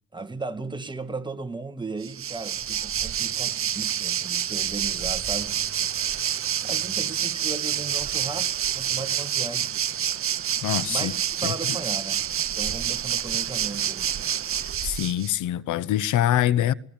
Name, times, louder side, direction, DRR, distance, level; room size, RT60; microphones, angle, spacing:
voice 1, 0.1-5.6 6.6-9.8 10.9-12.2 12.6-14.1, right 3 dB, 15° right, 2.2 m, -36 dB
Waves surf, 2.0-15.3, right 9 dB, 45° right, 0.9 m, -28 dB
voice 2, 10.6-11.1 11.4-11.8 14.6-16.7, left 12 dB, 80° left, 0.9 m, -25 dB
20.5 x 19.5 x 8.8 m
cardioid pair, 90°, 30 cm